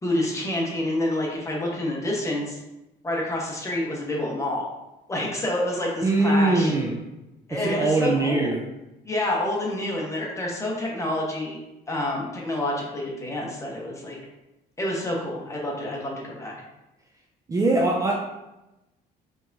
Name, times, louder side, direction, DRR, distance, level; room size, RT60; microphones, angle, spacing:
voice 1, 0.0-2.6 3.0-4.6 5.1-6.7 7.5-8.5 9.0-11.6 11.9-14.2 14.8-16.5, left 1 dB, 15° left, -2 dB, 1.2 m, -28 dB
voice 2, 6.0-7.0 7.5-8.6 17.5-18.1, right 2 dB, 20° right, -1 dB, 0.5 m, -22 dB
4.5 x 3.5 x 2.7 m, 0.97 s
cardioid pair, 110°, 17 cm